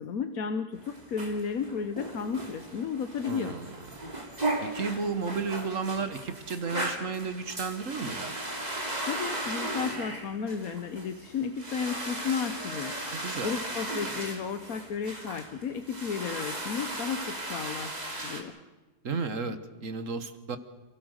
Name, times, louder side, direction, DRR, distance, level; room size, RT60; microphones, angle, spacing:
voice 1, 0.0-3.6 9.1-12.9 13.4-17.9 18.2-18.5, left 6 dB, 60° left, 9 dB, 1.3 m, -33 dB
sound 1, 0.7-18.4, right 1 dB, 25° right, 3.0 m, -36 dB
voice 2, 3.3-3.7 4.6-8.3 13.1-13.5 19.0-20.6, right 5 dB, 50° right, 10 dB, 1.5 m, -33 dB
28.5 x 17.0 x 6.5 m, 1.2 s
omnidirectional pair, 1.8 m